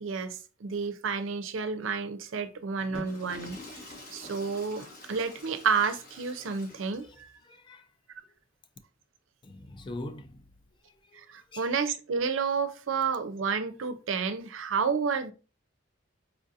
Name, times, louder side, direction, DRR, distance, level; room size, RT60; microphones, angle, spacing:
voice 1, 0.0-3.6 4.1-7.3 11.1-15.3, right 5 dB, 75° right, 0.5 m, -30 dB
Water / Toilet flush, 2.8-7.3, left 1 dB, 50° left, 1.3 m, -47 dB
voice 2, 7.0-7.9 9.4-10.4 10.9-11.7, left 2 dB, 25° left, 0.4 m, -44 dB
4.4 x 2.4 x 2.7 m
head